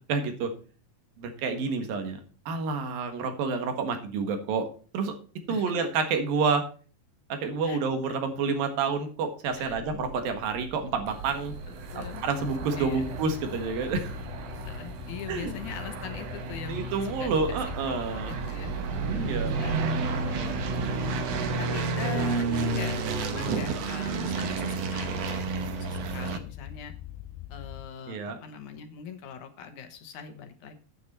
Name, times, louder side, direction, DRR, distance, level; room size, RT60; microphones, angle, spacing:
voice 1, 0.1-0.5 1.2-2.2 2.5-4.7 4.9-5.1 5.5-6.6 7.3-11.5 11.9-14.2 15.3-15.5 16.7-18.3 19.0-19.5 28.1-28.4, right 4 dB, 80° right, 7 dB, 3.4 m, -29 dB
sound 1, 9.5-21.5, right 4 dB, 40° right, 2.7 m, -36 dB
sound 2, 11.1-26.4, right 4 dB, 60° right, 1.8 m, -33 dB
sound 3, 11.9-27.9, left 13 dB, 85° left, 2.4 m, -43 dB
voice 2, 11.9-12.2 12.8-13.1 14.6-17.6 17.9-18.7 19.3-20.0 20.8-21.3 21.6-26.9 27.5-30.8, left 8 dB, 65° left, 7 dB, 2.3 m, -42 dB
9.5 x 9.2 x 4.2 m, 0.38 s
omnidirectional pair, 4.0 m